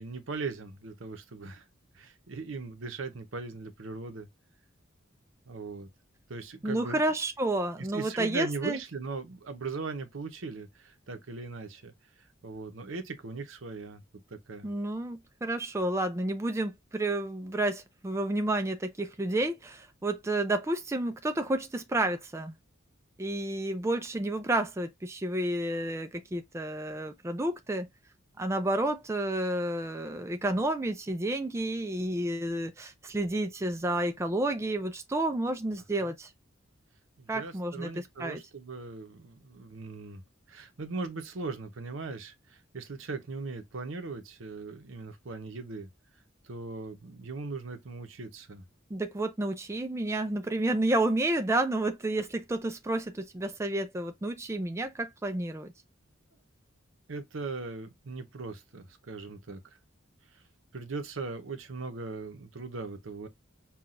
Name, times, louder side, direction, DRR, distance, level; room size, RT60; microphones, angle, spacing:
voice 1, 0.0-1.7 1.9-4.3 5.5-5.9 6.3-7.0 7.8-14.0 14.3-14.7 36.0-36.1 37.2-40.2 40.5-45.9 46.4-48.6 57.1-59.6 60.3-60.4 60.7-63.3, right 3 dB, 75° right, 0.8 m, -39 dB
voice 2, 6.6-8.8 14.6-22.5 23.2-27.9 28.4-36.3 37.3-38.4 48.9-55.7, right 1 dB, 15° right, 0.4 m, -30 dB
5.6 x 2.4 x 2.4 m
head